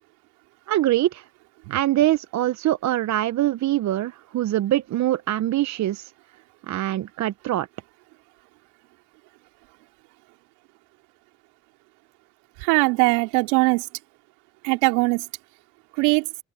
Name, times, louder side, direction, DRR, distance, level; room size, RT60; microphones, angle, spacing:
voice 1, 0.7-1.2 1.7-6.1 6.7-7.7, right 14 dB, 45° right, 1.0 m, -23 dB
voice 2, 12.6-13.9 14.6-15.2 16.0-16.3, right 28 dB, 70° right, 3.2 m, -20 dB
open air
hypercardioid pair, 75°, 39 cm